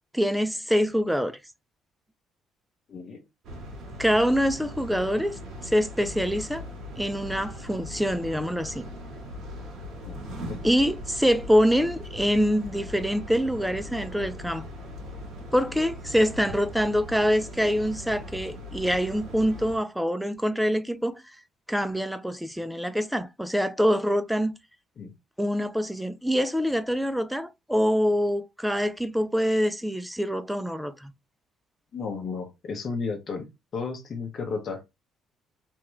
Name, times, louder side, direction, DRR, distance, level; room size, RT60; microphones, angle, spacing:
voice 1, 0.1-1.4 4.0-6.6 7.0-8.9 10.6-14.7 15.5-21.2 21.7-24.5 25.4-31.1, equal, ahead, 0.5 m, -25 dB
voice 2, 2.9-3.2 10.0-10.2 10.5-10.7 25.0-25.1 31.9-33.5 33.7-34.8, left 4 dB, 45° left, 0.9 m, -33 dB
sound 1, 3.4-19.8, left 1 dB, 60° right, 1.8 m, -40 dB
3.6 x 2.9 x 3.1 m
cardioid pair, 115°, 0 cm